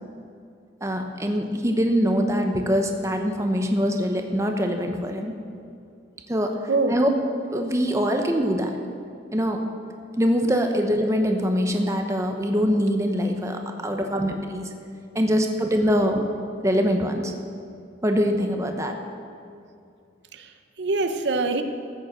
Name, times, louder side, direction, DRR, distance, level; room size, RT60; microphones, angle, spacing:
voice 1, 0.8-5.4 6.3-6.5 6.9-7.1 7.5-8.8 9.3-9.6 10.2-14.7 15.1-16.2 16.6-17.3 18.0-19.0, equal, 15° right, 4 dB, 0.8 m, -23 dB
voice 2, 20.3-21.6, right 3 dB, 70° right, 8 dB, 0.8 m, -25 dB
14.0 x 6.9 x 7.8 m, 2.5 s
head